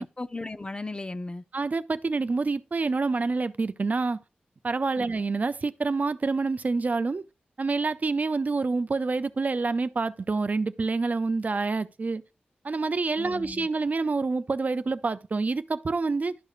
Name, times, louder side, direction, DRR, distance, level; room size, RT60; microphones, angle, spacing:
voice 1, 0.0-1.4 5.0-5.1 13.2-13.7, left 2 dB, 30° left, 0.5 m, -36 dB
voice 2, 1.5-4.2 4.6-7.2 7.6-12.2 12.6-16.4, right 3 dB, 50° right, 0.4 m, -27 dB
11.5 x 4.8 x 2.4 m
cardioid pair, 45°, 3 cm